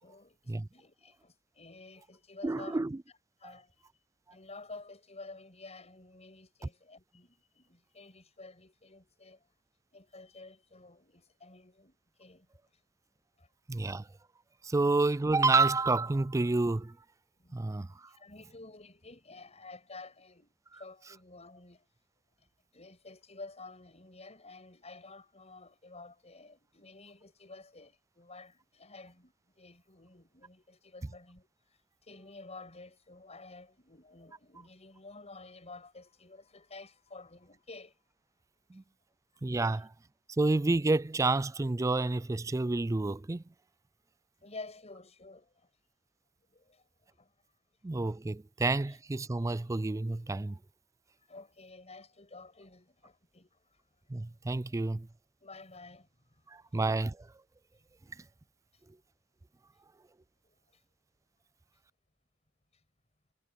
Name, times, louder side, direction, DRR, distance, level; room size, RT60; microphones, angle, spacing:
voice 1, 0.0-2.8 3.1-3.7 4.3-9.4 9.9-12.5 13.4-13.5 17.4-17.7 18.2-21.9 22.7-31.5 32.1-37.9 44.4-45.5 46.5-46.8 47.2-47.3 48.9-49.0 49.4-49.5 51.3-53.5 55.4-56.1, left 3 dB, 35° left, 6.1 m, -51 dB
voice 2, 2.4-3.0 13.7-14.1 14.6-17.0 17.5-17.9 38.7-38.8 39.4-39.9 40.4-43.4 47.8-50.6 54.1-55.1 56.5-57.3, right 3 dB, 15° right, 0.3 m, -29 dB
head